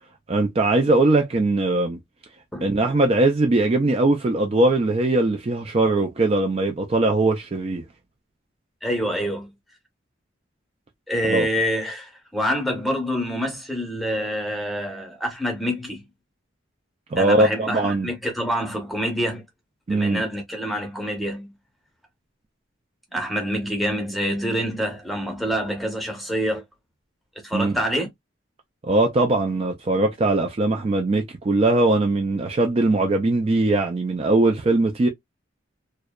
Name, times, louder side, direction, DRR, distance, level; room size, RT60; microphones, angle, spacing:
voice 1, 0.3-2.0 2.6-7.8 11.2-11.5 17.1-18.1 19.9-20.2 27.5-27.7 28.8-35.1, right 2 dB, 30° right, 0.4 m, -20 dB
voice 2, 8.8-9.5 11.1-16.0 17.2-19.4 19.9-21.5 23.1-26.6 27.4-28.1, equal, ahead, 0.8 m, -26 dB
2.6 x 2.1 x 2.2 m
head